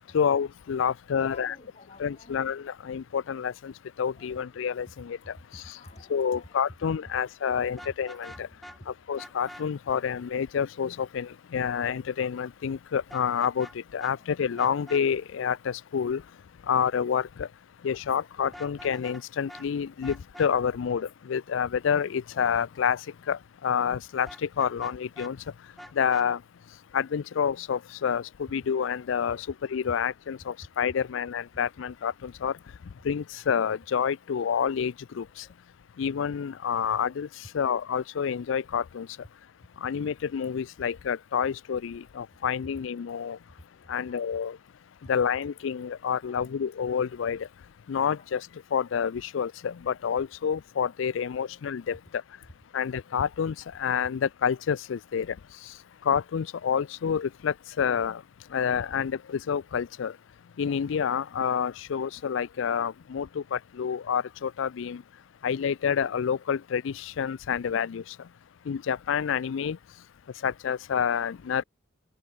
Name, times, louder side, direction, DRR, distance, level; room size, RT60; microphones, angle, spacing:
voice 1, 0.1-1.6 2.0-3.7 4.0-5.2 6.1-8.5 9.1-13.7 13.9-16.2 16.7-17.5 17.8-23.0 23.3-25.4 26.0-26.4 26.9-28.2 28.5-32.5 33.0-35.2 36.0-37.3 37.5-39.1 39.8-43.4 43.9-44.6 45.1-47.5 47.9-48.4 48.7-52.0 52.7-55.3 56.1-58.2 58.5-60.1 60.6-65.0 65.4-68.0 68.7-69.8 70.4-71.6, left 7 dB, 70° left, 0.4 m, -28 dB
voice 2, 1.1-2.5 4.1-4.4 4.9-5.0 5.4-6.5 7.0-7.2 7.5-7.9 8.3-8.9 14.1-14.3 35.4-35.6 36.8-36.9 43.5-43.6 43.8-44.4 46.2-46.6 48.0-48.3, left 1 dB, 35° left, 3.5 m, -52 dB
Vehicle horn car horn honking, 7.7-8.8 9.2-9.6 13.1-13.7 14.0-14.1 14.6-15.0 18.4-19.2 19.5-19.7 20.0-20.5 24.3-25.3 25.8-26.3, equal, ahead, 1.6 m, -45 dB
head